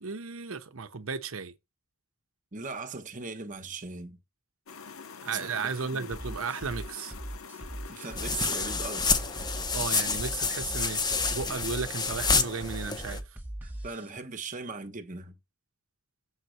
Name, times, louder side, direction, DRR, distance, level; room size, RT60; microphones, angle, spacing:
voice 1, 0.0-1.5 5.2-7.1 9.7-13.2, right 5 dB, 80° right, 0.9 m, -34 dB
voice 2, 2.5-4.2 5.9-6.1 7.9-9.2 13.6-15.4, right 4 dB, 40° right, 1.1 m, -39 dB
sound 1, 4.7-9.6, left 5 dB, 80° left, 0.7 m, -46 dB
sound 2, 6.1-14.1, right 1 dB, 10° right, 0.8 m, -40 dB
sound 3, 8.2-13.2, left 4 dB, 20° left, 0.8 m, -29 dB
7.4 x 4.3 x 6.4 m
head